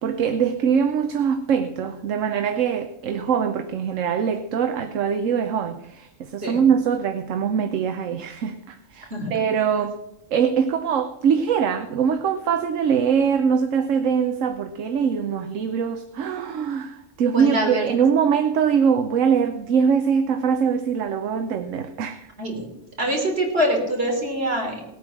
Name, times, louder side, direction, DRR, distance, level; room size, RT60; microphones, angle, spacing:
voice 1, 0.0-10.0 10.3-22.3, right 7 dB, 75° right, 1.2 m, -22 dB
voice 2, 17.3-17.8 22.4-22.7 23.0-24.8, equal, 50° right, 3.8 m, -24 dB
19.0 x 8.8 x 6.0 m
omnidirectional pair, 1.3 m